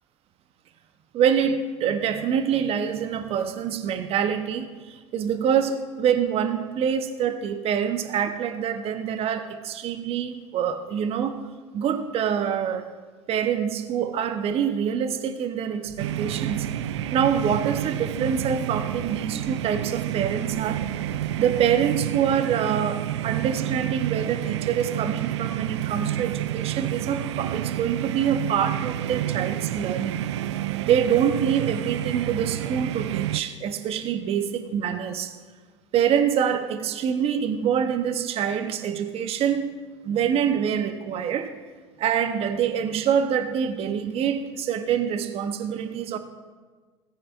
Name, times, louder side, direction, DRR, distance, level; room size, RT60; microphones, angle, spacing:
voice 1, 1.1-11.4 11.7-12.9 13.3-20.8 21.4-30.2 30.9-35.4 35.9-39.7 40.0-41.6 42.0-46.2, right 8 dB, 40° right, 8 dB, 0.9 m, -25 dB
sound 1, 15.8-21.9, left 1 dB, 70° left, 1.5 m, -45 dB
sound 2, 16.0-33.4, right 12 dB, 75° right, 0.4 m, -29 dB
17.5 x 9.5 x 2.5 m, 1.4 s
hypercardioid pair, 80°, 15 cm